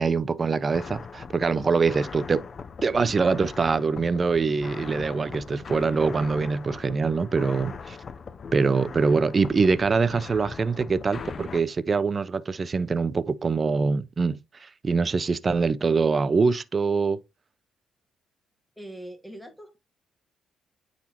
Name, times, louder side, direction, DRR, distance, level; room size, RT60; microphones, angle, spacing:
voice 1, 0.0-2.4 2.8-8.0 8.5-17.2, right 4 dB, 35° right, 0.5 m, -24 dB
sound 1, 0.7-11.6, left 5 dB, 45° left, 0.6 m, -40 dB
voice 2, 18.8-19.8, right 1 dB, ahead, 1.4 m, -41 dB
8.9 x 4.1 x 2.9 m
cardioid pair, 90°, 0 cm